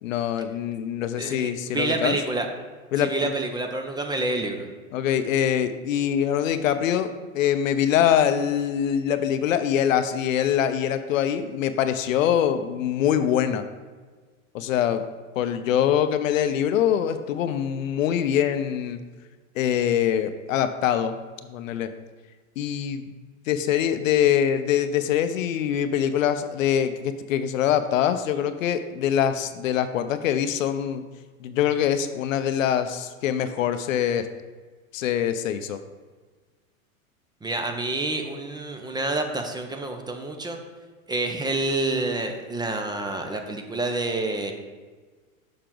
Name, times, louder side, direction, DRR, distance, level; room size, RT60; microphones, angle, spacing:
voice 1, 0.0-2.2 2.9-3.3 4.9-13.7 14.5-15.0 15.4-19.0 19.5-21.2 21.5-21.9 22.6-23.1 23.5-31.0 31.4-34.3 34.9-35.8, left 9 dB, 70° left, 10 dB, 0.7 m, -24 dB
voice 2, 1.2-2.5 3.0-4.7 37.4-40.6 41.1-44.5, right 2 dB, 10° right, 4 dB, 0.7 m, -28 dB
6.9 x 6.4 x 3.9 m, 1.4 s
hypercardioid pair, 105°, 41 cm